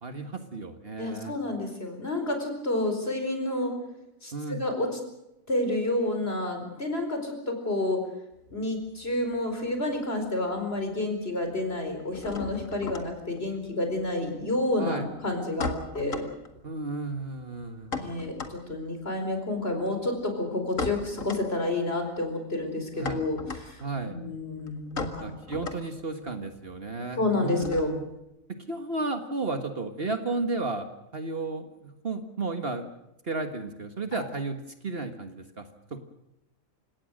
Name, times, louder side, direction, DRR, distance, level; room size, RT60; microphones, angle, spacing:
voice 1, 0.0-1.3 4.3-4.6 14.8-15.1 16.6-18.0 22.9-23.2 23.8-24.2 25.2-28.0 28.7-30.9 31.1-32.9 33.2-36.0, right 3 dB, 45° right, 7 dB, 1.8 m, -33 dB
voice 2, 1.0-3.7 4.2-4.9 5.5-8.0 8.5-16.2 18.0-25.3 27.2-27.9, left 2 dB, 45° left, 5 dB, 4.9 m, -29 dB
sound 1, 8.3-10.0 10.2-10.9 11.2-28.2, left 3 dB, 70° left, 2.3 m, -39 dB
29.5 x 17.5 x 6.5 m, 0.88 s
omnidirectional pair, 1.4 m